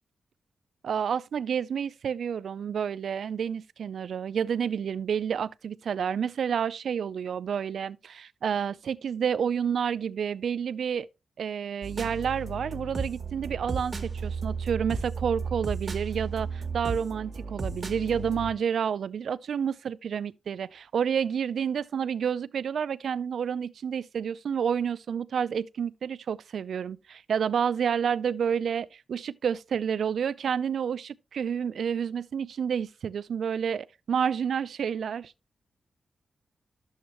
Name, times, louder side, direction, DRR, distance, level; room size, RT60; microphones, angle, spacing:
voice 1, 0.8-11.1 11.4-35.3, right 7 dB, 70° right, 0.3 m, -29 dB
sound 1, 11.8-18.5, right 4 dB, 30° right, 1.1 m, -34 dB
11.0 x 7.1 x 3.0 m
wide cardioid pair, 160°, 0 cm